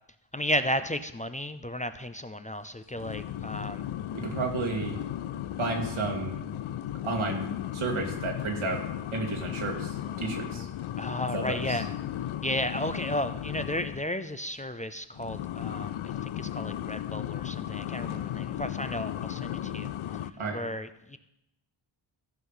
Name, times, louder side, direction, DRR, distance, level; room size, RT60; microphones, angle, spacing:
voice 1, 0.3-3.8 10.5-10.7 11.0-11.9 12.4-16.0 16.2-19.9 20.5-21.2, left 1 dB, 15° left, 10 dB, 0.4 m, -33 dB
sound 1, 2.9-14.1 15.1-20.3, left 11 dB, 85° left, 0.5 m, -35 dB
voice 2, 4.1-5.0 5.6-6.5 7.0-7.5 7.7-8.8 9.1-10.7 11.3-11.8 20.4-20.6, right 3 dB, 90° right, 1 dB, 2.0 m, -32 dB
14.0 x 5.7 x 5.6 m, 0.85 s
wide cardioid pair, 85°, 47 cm